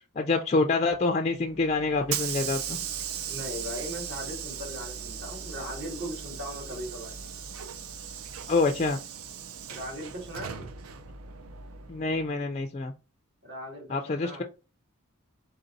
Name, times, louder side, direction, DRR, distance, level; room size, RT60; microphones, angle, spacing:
voice 1, 0.2-2.8 8.5-9.0 11.9-12.9 13.9-14.4, left 3 dB, 30° left, 4 dB, 0.3 m, -26 dB
Hiss / Sliding door, 1.4-12.3, right 8 dB, 75° right, 0.5 m, -38 dB
voice 2, 3.3-7.1 9.7-10.6 13.4-14.4, equal, 55° right, -1 dB, 2.1 m, -38 dB
3.9 x 3.9 x 2.6 m, 0.31 s
head